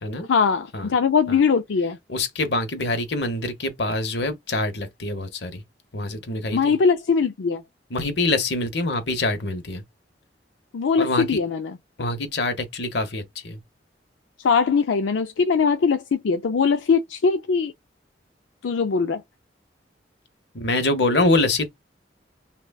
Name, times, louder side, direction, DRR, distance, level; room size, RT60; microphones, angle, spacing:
voice 1, 0.3-2.0 6.5-7.6 10.7-11.8 14.4-17.7 18.6-19.2, left 5 dB, 90° left, 0.4 m, -21 dB
voice 2, 2.1-5.6 5.9-6.8 7.9-9.8 11.0-11.4 12.0-13.6 20.5-21.7, left 2 dB, 65° left, 1.0 m, -25 dB
5.8 x 2.3 x 2.3 m
head